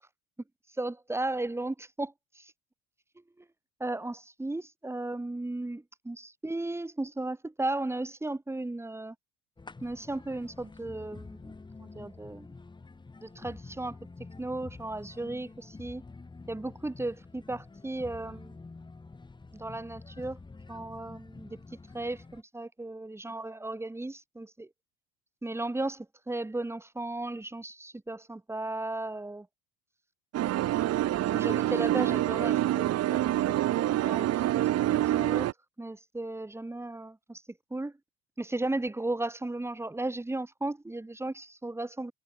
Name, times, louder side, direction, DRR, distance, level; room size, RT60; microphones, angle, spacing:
voice 1, 0.8-2.5 3.4-3.5 3.8-9.1 9.8-11.5 11.8-12.5 13.2-14.0 14.4-16.0 16.5-18.6 19.5-20.4 20.7-21.6 21.9-24.7 25.4-29.5 31.0-33.3 34.0-34.3 34.9-35.5 35.8-37.4 37.7-37.9 38.4-42.1, right 2 dB, 10° right, 3.1 m, -35 dB
sound 1, 9.6-22.4, left 3 dB, 15° left, 2.8 m, -48 dB
sound 2, 30.3-35.5, right 14 dB, 50° right, 2.1 m, -26 dB
cardioid pair, 120°, 32 cm